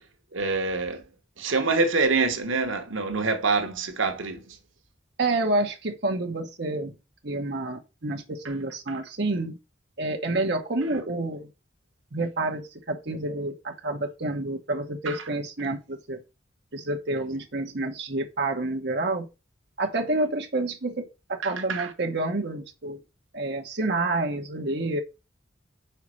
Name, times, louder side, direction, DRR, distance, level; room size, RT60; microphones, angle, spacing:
voice 1, 0.3-1.0 1.4-4.6 15.1-15.2 21.4-21.9, right 4 dB, 85° right, 1.1 m, -26 dB
voice 2, 5.2-6.9 7.2-9.6 10.0-11.5 12.1-16.2 16.7-19.3 19.8-23.0 23.3-25.0, right 2 dB, 55° right, 1.1 m, -28 dB
5.7 x 4.2 x 6.2 m
head